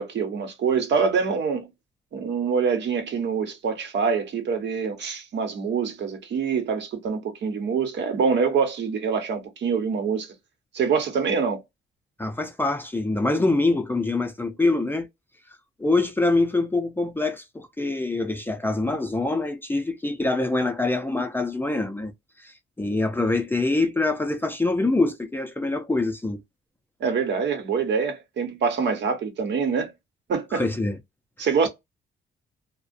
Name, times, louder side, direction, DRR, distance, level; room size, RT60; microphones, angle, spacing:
voice 1, 0.0-1.7 2.1-10.3 10.7-11.6 27.0-29.9 30.3-30.6 31.4-31.7, right 5 dB, 65° right, 0.9 m, -25 dB
voice 2, 12.2-15.1 15.8-22.1 22.4-26.4 30.5-31.0 31.4-31.7, left 2 dB, 10° left, 0.4 m, -25 dB
2.3 x 2.1 x 2.5 m
cardioid pair, 90°, 20 cm